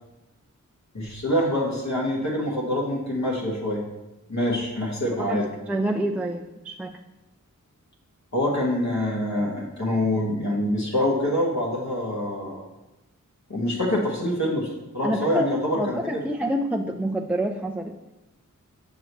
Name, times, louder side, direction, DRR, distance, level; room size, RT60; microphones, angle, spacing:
voice 1, 0.9-3.8 4.3-5.4 8.3-12.6 13.5-14.7 14.9-16.0, left 1 dB, 60° left, -3 dB, 1.4 m, -25 dB
voice 2, 5.7-6.9 15.0-17.9, right 1 dB, 5° right, 3 dB, 0.3 m, -27 dB
6.7 x 6.2 x 3.0 m, 0.98 s
wide cardioid pair, 90°, 32 cm